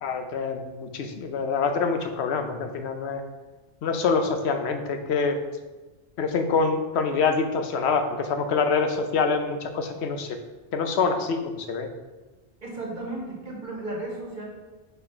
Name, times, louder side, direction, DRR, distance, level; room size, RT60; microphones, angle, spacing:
voice 1, 0.0-3.2 3.8-5.4 6.2-10.4 10.7-11.9, left 5 dB, 75° left, 6 dB, 0.9 m, -25 dB
voice 2, 12.6-14.5, right 2 dB, 45° right, -2 dB, 1.5 m, -34 dB
5.5 x 4.1 x 4.4 m, 1.2 s
omnidirectional pair, 1.1 m